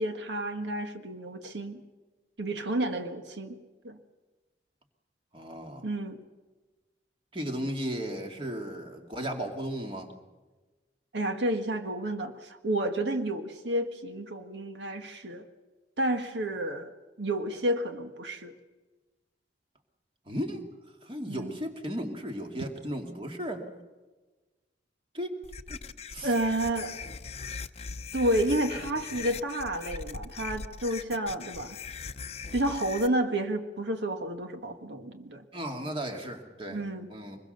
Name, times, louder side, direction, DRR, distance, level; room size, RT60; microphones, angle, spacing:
voice 1, 0.0-1.8 2.4-3.6 3.8-4.0 5.8-6.2 11.1-15.5 16.0-16.9 17.2-18.5 21.3-21.5 26.2-27.0 28.1-31.8 32.5-35.4 36.7-37.1, right 1 dB, 85° right, 6 dB, 1.6 m, -30 dB
voice 2, 5.3-5.8 7.3-10.1 20.3-20.6 21.0-23.6 25.1-25.4 25.7-25.8 26.1-26.3 35.5-36.8 37.1-37.4, equal, 30° right, 3 dB, 2.5 m, -35 dB
sound 1, 25.4-33.1, left 5 dB, 35° left, 0.7 m, -40 dB
24.5 x 21.5 x 6.8 m, 1.2 s
head